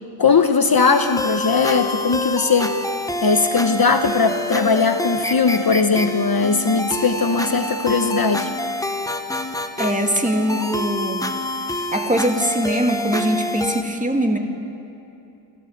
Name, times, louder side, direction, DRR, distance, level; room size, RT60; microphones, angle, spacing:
voice 1, 0.2-2.7 3.2-8.5, left 5 dB, 45° left, 7 dB, 1.0 m, -19 dB
sound 1, 0.8-13.8, left 1 dB, 5° left, 1.0 m, -27 dB
voice 2, 9.8-11.3 11.9-14.4, equal, 15° right, 3 dB, 2.2 m, -22 dB
26.5 x 13.5 x 8.0 m, 2.8 s
wide cardioid pair, 85°, 48 cm